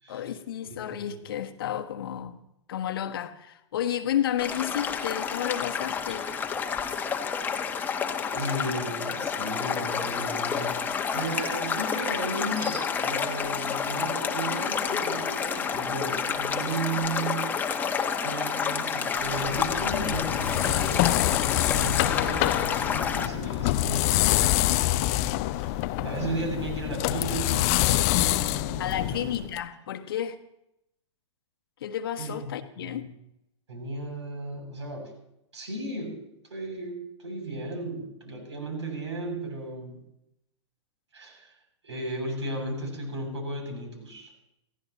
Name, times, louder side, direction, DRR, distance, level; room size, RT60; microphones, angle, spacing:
voice 1, 0.1-2.4 2.7-6.3 28.8-30.4 31.8-33.1, left 10 dB, 50° left, 1.3 m, -31 dB
sound 1, 4.4-23.3, left 6 dB, 10° left, 1.4 m, -29 dB
sound 2, 6.1-6.4 6.8-7.0 9.6-9.8 11.7-12.9, equal, 85° right, 7.2 m, -45 dB
voice 2, 8.3-10.8 11.1-17.9 18.2-25.2 25.5-29.4 32.2-32.5 32.8-33.1 33.7-35.1 35.5-36.2 36.5-40.0 41.1-41.5 41.8-44.3, right 2 dB, 65° right, 7.5 m, -35 dB
sound 3, 19.2-29.6, left 16 dB, 30° left, 0.6 m, -26 dB
26.0 x 17.0 x 3.1 m
figure-of-eight pair, 110°, 16 cm